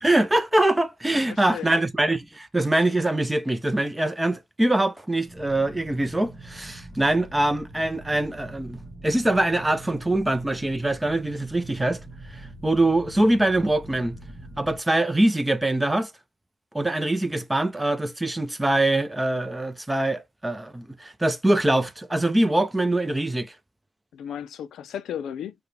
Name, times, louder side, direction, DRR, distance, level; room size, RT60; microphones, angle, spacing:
voice 1, 0.0-12.0 12.3-14.2 14.6-16.1 16.7-23.5, right 1 dB, 10° right, 0.6 m, -23 dB
voice 2, 1.1-1.7 24.1-25.5, left 9 dB, 70° left, 0.5 m, -35 dB
sound 1, 5.3-14.8, right 2 dB, 25° right, 1.2 m, -43 dB
4.6 x 2.3 x 3.3 m
cardioid pair, 90°, 0 cm